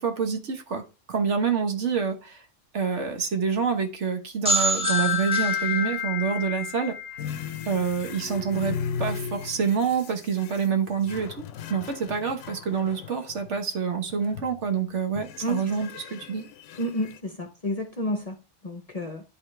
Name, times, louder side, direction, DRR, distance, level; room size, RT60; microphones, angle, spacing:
voice 1, 0.0-2.4 2.7-7.0 7.7-11.4 11.7-16.4, right 6 dB, 65° right, 1.3 m, -27 dB
sound 1, 4.4-8.1, left 3 dB, 5° right, 1.0 m, -27 dB
sound 2, 7.2-13.6 14.1-14.7 15.2-17.2, left 7 dB, 70° left, 0.9 m, -37 dB
voice 2, 16.8-18.3 18.6-19.2, equal, 35° left, 0.7 m, -30 dB
10.5 x 4.0 x 3.3 m
omnidirectional pair, 1.3 m